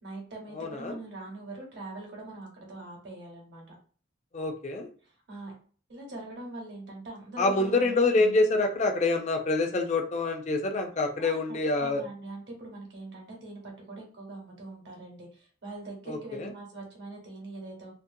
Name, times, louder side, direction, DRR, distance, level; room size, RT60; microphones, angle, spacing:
voice 1, 0.0-3.7 5.0-5.5 5.9-8.3 11.2-11.4 11.8-17.9, right 2 dB, 65° right, -1 dB, 0.9 m, -42 dB
voice 2, 0.5-1.0 4.3-4.9 7.4-12.0 16.1-16.5, left 2 dB, 35° left, 4 dB, 0.4 m, -26 dB
2.5 x 2.1 x 2.6 m, 0.42 s
head